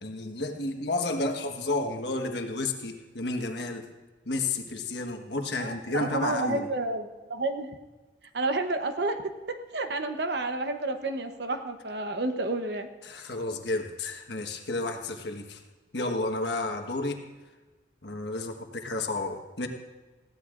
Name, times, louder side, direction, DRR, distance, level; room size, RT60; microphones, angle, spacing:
voice 1, 0.0-3.9 4.2-6.6 13.0-15.6 15.9-17.2 18.0-19.7, left 2 dB, 70° left, 4 dB, 1.4 m, -31 dB
voice 2, 5.6-7.7 8.3-9.2 9.5-12.9, right 2 dB, 65° right, 7 dB, 0.9 m, -30 dB
20.5 x 15.5 x 2.5 m, 1.3 s
head